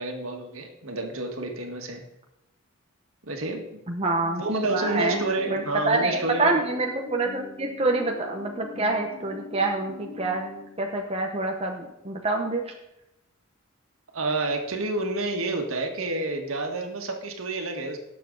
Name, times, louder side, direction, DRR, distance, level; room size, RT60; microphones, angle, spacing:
voice 1, 0.0-2.0 3.2-3.8 4.4-6.5 14.1-18.0, right 2 dB, 85° right, 3 dB, 1.8 m, -29 dB
voice 2, 3.9-4.4 4.7-10.4 10.8-12.7, right 2 dB, 30° right, 1 dB, 1.0 m, -26 dB
sound 1, 4.2-11.4, left 3 dB, 35° left, 0.7 m, -42 dB
18.0 x 6.9 x 4.0 m, 0.90 s
head